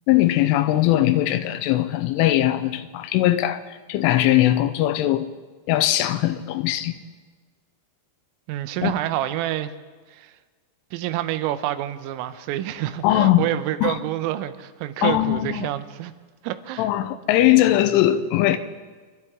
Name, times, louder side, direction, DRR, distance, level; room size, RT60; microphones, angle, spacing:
voice 1, 0.1-3.6 3.9-5.3 5.7-7.0 8.8-8.9 13.0-13.5 13.8-14.0 15.0-15.7 16.8-18.6, left 14 dB, 85° left, 3.1 m, -20 dB
voice 2, 8.5-9.7 10.1-10.4 10.9-16.1 16.4-16.9, right 13 dB, 85° right, 3.3 m, -28 dB
28.0 x 12.5 x 3.6 m
omnidirectional pair, 5.8 m